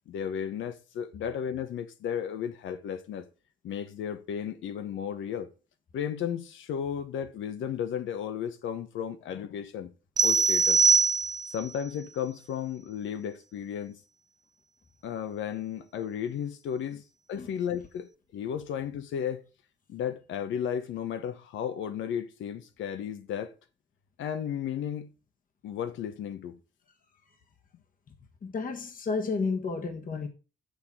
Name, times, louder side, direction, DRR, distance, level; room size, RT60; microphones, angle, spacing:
voice 1, 0.1-3.3 3.6-5.5 5.9-9.9 10.2-10.8 11.5-14.0 15.0-17.0 17.3-19.4 19.9-23.5 24.2-25.1 25.6-26.6, left 8 dB, 80° left, 1.1 m, -34 dB
sound 1, 10.2-11.7, right 5 dB, 20° right, 0.4 m, -22 dB
voice 2, 28.4-30.3, left 4 dB, 45° left, 1.5 m, -31 dB
7.2 x 6.7 x 4.8 m
cardioid pair, 90°, 20 cm